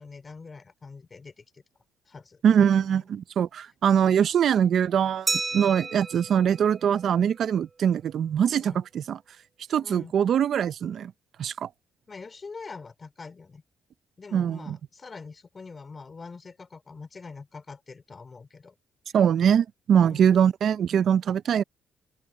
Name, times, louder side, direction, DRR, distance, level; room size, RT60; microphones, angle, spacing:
voice 1, 0.0-1.6 2.1-3.0 8.6-8.8 9.8-10.1 12.1-13.6 14.2-18.7 20.0-20.2, left 4 dB, 35° left, 4.2 m, -44 dB
voice 2, 2.4-9.2 9.7-11.1 11.4-11.7 14.3-14.8 19.1-21.6, right 8 dB, 65° right, 0.6 m, -23 dB
Glass, 5.3-7.7, right 3 dB, 25° right, 1.4 m, -33 dB
open air
cardioid pair, 90°, 0 cm